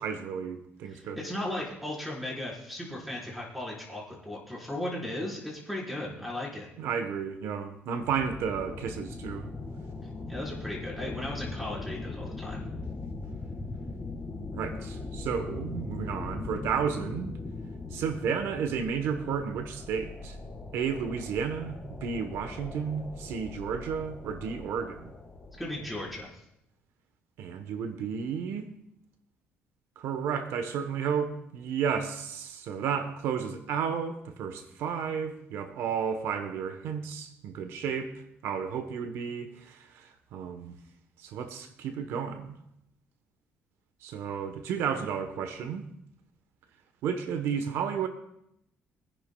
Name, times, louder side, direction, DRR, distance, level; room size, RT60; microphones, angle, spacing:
voice 1, 0.0-1.2 6.8-9.5 14.3-17.4 17.9-20.4 20.7-25.1 27.4-28.7 30.0-38.1 38.4-40.8 41.2-42.6 44.0-45.8 47.0-48.1, right 7 dB, 85° right, 8 dB, 1.0 m, -32 dB
voice 2, 0.9-6.7 10.3-12.6 25.6-26.4, left 1 dB, ahead, -4 dB, 4.2 m, -36 dB
sound 1, 8.0-26.2, left 3 dB, 20° left, 1.8 m, -40 dB
24.0 x 10.0 x 2.3 m, 0.78 s
cardioid pair, 125°, 4 cm